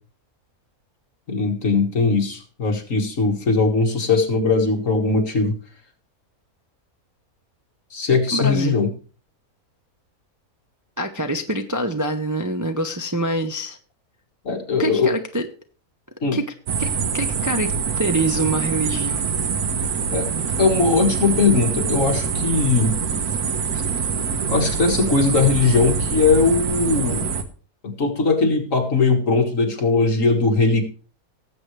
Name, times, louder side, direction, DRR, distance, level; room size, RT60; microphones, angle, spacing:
voice 1, 1.3-5.5 7.9-8.9 14.5-15.1 16.2-16.4 20.1-20.3 20.6-23.0 24.5-27.3 27.8-30.8, left 4 dB, 60° left, 3 dB, 2.2 m, -19 dB
voice 2, 8.3-8.8 11.0-13.8 14.8-15.5 16.3-16.4 16.8-17.7 18.0-19.3 23.7-23.8, right 1 dB, 20° right, 5 dB, 0.6 m, -25 dB
sound 1, 16.7-27.4, right 5 dB, 90° right, 1.6 m, -24 dB
18.5 x 7.9 x 3.3 m, 0.37 s
omnidirectional pair, 1.6 m